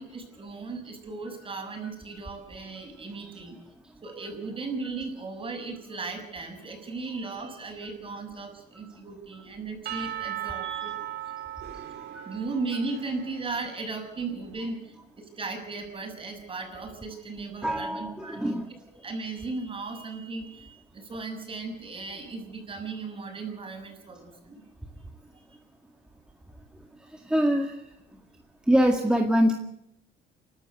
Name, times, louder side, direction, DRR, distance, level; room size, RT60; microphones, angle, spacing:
voice 1, 0.0-3.6 4.0-10.9 12.3-18.5 18.9-24.6, right 3 dB, 30° right, 4 dB, 6.4 m, -36 dB
Percussion / Church bell, 9.9-14.0, right 12 dB, 75° right, 2.7 m, -37 dB
voice 2, 17.6-18.7 27.1-27.8 28.7-29.5, equal, 5° right, 3 dB, 1.9 m, -24 dB
29.5 x 12.5 x 7.8 m, 0.81 s
cardioid pair, 110°, 17 cm